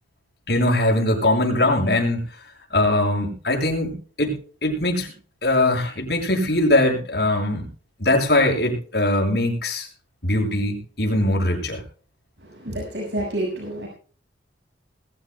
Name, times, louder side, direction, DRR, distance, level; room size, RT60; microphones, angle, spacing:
voice 1, 0.5-2.2 2.7-4.4 4.6-5.1 5.4-7.7 8.0-9.9 10.2-11.8, left 1 dB, 60° left, 1 dB, 7.6 m, -21 dB
voice 2, 12.4-13.9, right 1 dB, 75° right, 0 dB, 6.3 m, -29 dB
22.5 x 15.0 x 2.3 m, 0.40 s
head